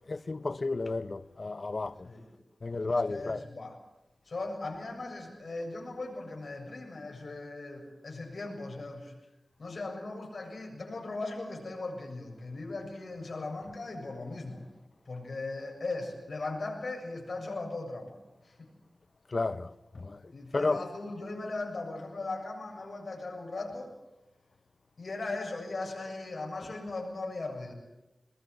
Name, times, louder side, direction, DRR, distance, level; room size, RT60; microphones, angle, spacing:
voice 1, 0.1-2.1 2.6-3.4 19.3-20.2 20.5-20.8, left 3 dB, 50° left, 0.8 m, -32 dB
voice 2, 2.9-3.8 4.3-9.1 9.6-14.6 15.1-18.7 20.3-23.9 25.0-27.7, left 2 dB, 65° left, 7.5 m, -38 dB
22.0 x 21.5 x 9.2 m
wide cardioid pair, 75°, 0 cm